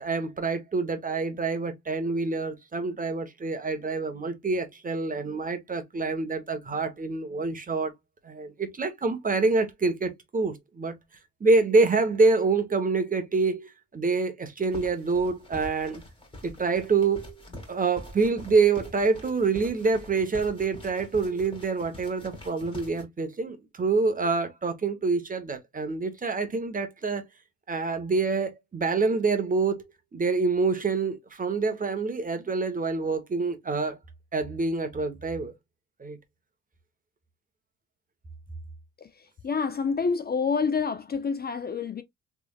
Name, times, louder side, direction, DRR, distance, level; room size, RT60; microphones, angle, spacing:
voice 1, 0.0-7.9 8.2-10.9 11.4-16.0 16.4-17.3 17.7-27.2 27.7-29.8 30.1-34.0 34.3-35.5 36.0-36.2, right 4 dB, 25° right, 1.1 m, -26 dB
sound 1, 14.6-23.0, left 1 dB, 15° left, 1.9 m, -45 dB
voice 2, 39.4-42.0, left 5 dB, 30° left, 0.5 m, -27 dB
3.4 x 3.3 x 2.3 m
cardioid pair, 90°, 30 cm